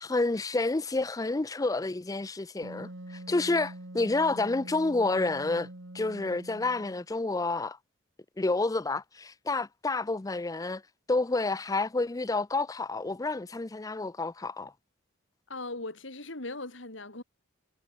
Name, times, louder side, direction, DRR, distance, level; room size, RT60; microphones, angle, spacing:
voice 1, 0.0-5.7 5.9-7.8 8.4-10.8 11.1-14.7, left 3 dB, 20° left, 0.5 m, -29 dB
Wind instrument woodwind instrument, 2.6-7.1, right 1 dB, 70° right, 2.9 m, -45 dB
voice 2, 15.5-17.2, left 2 dB, 75° left, 4.2 m, -39 dB
head